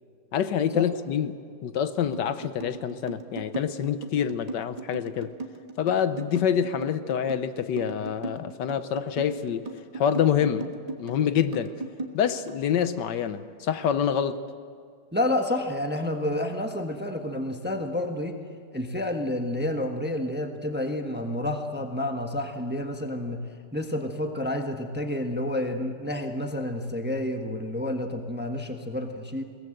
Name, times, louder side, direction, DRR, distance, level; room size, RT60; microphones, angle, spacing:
voice 1, 0.3-5.3 5.8-9.7 9.9-11.7 12.1-14.4, left 8 dB, 75° left, 11 dB, 1.5 m, -26 dB
sound 1, 2.1-12.6, right 2 dB, 25° right, 1.4 m, -37 dB
voice 2, 15.1-18.4 18.7-23.4 23.7-29.4, left 1 dB, 5° right, 4 dB, 1.1 m, -29 dB
22.0 x 18.5 x 7.8 m, 2.1 s
omnidirectional pair, 1.9 m